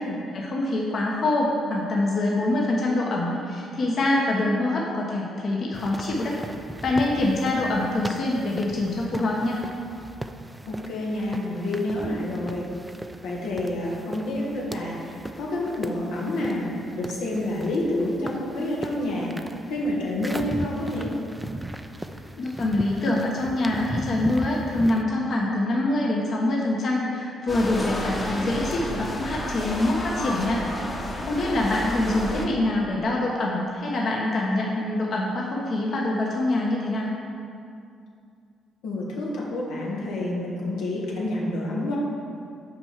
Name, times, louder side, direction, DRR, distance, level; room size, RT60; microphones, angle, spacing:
voice 1, 0.3-6.4 6.8-9.6 22.4-37.1, left 2 dB, 55° left, -2 dB, 1.0 m, -25 dB
sound 1, 5.7-25.0, right 1 dB, 10° right, 0.4 m, -38 dB
voice 2, 10.7-12.7 13.2-19.3 19.7-21.1 31.8-32.5 38.8-42.0, left 1 dB, 90° left, -3 dB, 1.4 m, -28 dB
sound 2, 27.5-32.5, left 1 dB, 25° left, 1.0 m, -31 dB
6.1 x 4.5 x 6.5 m, 2.4 s
cardioid pair, 90°, 0 cm